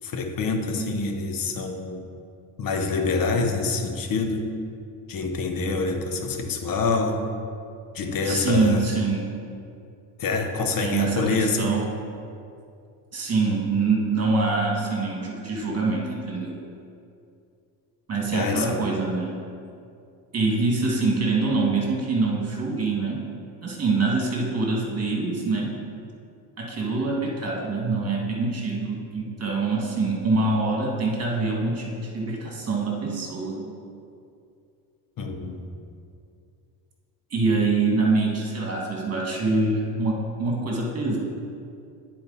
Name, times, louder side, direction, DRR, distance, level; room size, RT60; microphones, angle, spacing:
voice 1, 0.0-2.1 2.6-4.6 5.1-7.3 7.9-8.9 10.2-11.8 18.3-18.8 35.2-35.7, left 3 dB, 50° left, 5 dB, 0.9 m, -26 dB
voice 2, 8.2-9.3 10.8-11.9 13.1-16.6 18.1-19.4 20.3-23.3 23.6-25.8 26.6-33.7 37.3-41.2, right 3 dB, 30° right, -1 dB, 1.9 m, -25 dB
9.7 x 4.5 x 4.1 m, 2.5 s
supercardioid pair, 90°, 46 cm